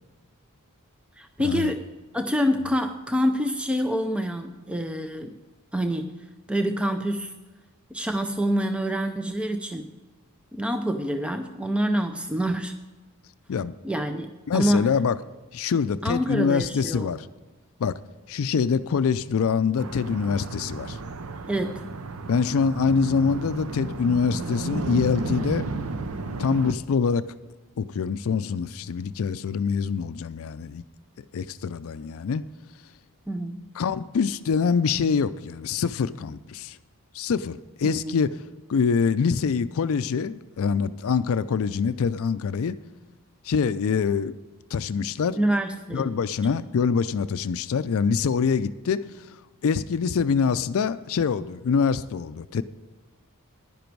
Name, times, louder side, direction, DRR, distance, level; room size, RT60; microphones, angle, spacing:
voice 1, 1.2-1.9 2.1-5.3 5.7-6.2 6.5-7.3 7.9-9.9 10.5-12.8 13.8-14.9 16.0-17.1 21.5-21.9 33.3-33.7 37.8-38.2 45.4-46.2, equal, 5° right, 6 dB, 0.5 m, -26 dB
voice 2, 14.5-15.2 15.5-17.3 17.8-18.0 18.3-21.0 22.3-25.7 26.4-27.3 27.8-30.8 31.3-32.4 33.8-36.8 37.1-38.4 38.7-42.8 43.4-44.4 44.7-45.4 45.9-52.6, left 6 dB, 65° left, 13 dB, 0.4 m, -25 dB
sound 1, 19.8-26.7, right 3 dB, 70° right, 0.7 m, -33 dB
11.0 x 10.5 x 4.6 m, 1.2 s
head